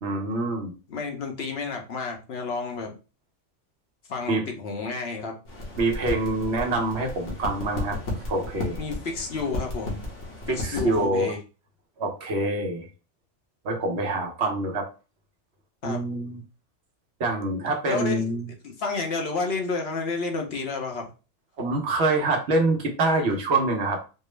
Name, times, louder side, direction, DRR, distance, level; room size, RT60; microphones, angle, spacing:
voice 1, 0.0-0.7 4.3-4.4 5.8-8.0 8.3-8.8 10.5-11.3 12.0-12.9 13.6-14.9 15.8-16.4 17.2-18.5 21.6-24.0, right 2 dB, 65° right, 3 dB, 1.1 m, -25 dB
voice 2, 0.9-3.0 4.1-5.3 8.8-10.0 10.5-11.4 15.8-16.0 17.9-18.2 18.6-21.1, left 4 dB, 60° left, 3 dB, 1.0 m, -30 dB
sound 1, 5.4-11.1, left 1 dB, 80° left, 1.5 m, -34 dB
4.4 x 2.0 x 3.2 m, 0.32 s
omnidirectional pair, 1.2 m